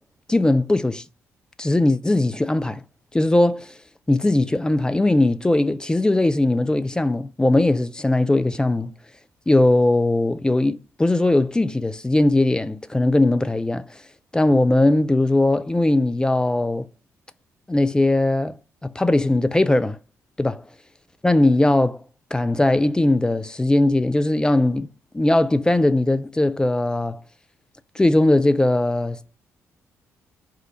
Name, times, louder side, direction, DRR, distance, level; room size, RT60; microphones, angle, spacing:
voice 1, 0.3-1.0 1.6-2.8 3.1-3.7 4.1-8.9 9.5-14.0 14.3-16.9 17.7-18.6 18.8-20.0 20.4-20.6 21.2-22.0 22.3-24.9 25.1-27.2 28.0-29.2, left 2 dB, 10° left, 0.3 m, -19 dB
3.3 x 2.4 x 4.0 m
figure-of-eight pair, 40°, 8 cm